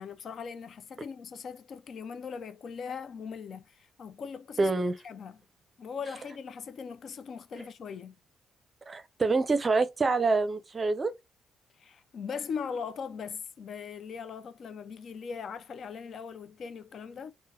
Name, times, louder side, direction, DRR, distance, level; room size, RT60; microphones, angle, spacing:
voice 1, 0.0-4.7 5.0-5.4 5.8-8.1 11.8-17.3, left 6 dB, 55° left, 0.4 m, -40 dB
voice 2, 4.6-5.0 8.9-11.1, right 3 dB, 30° right, 0.5 m, -26 dB
3.7 x 2.1 x 2.7 m
cardioid pair, 90°, 0 cm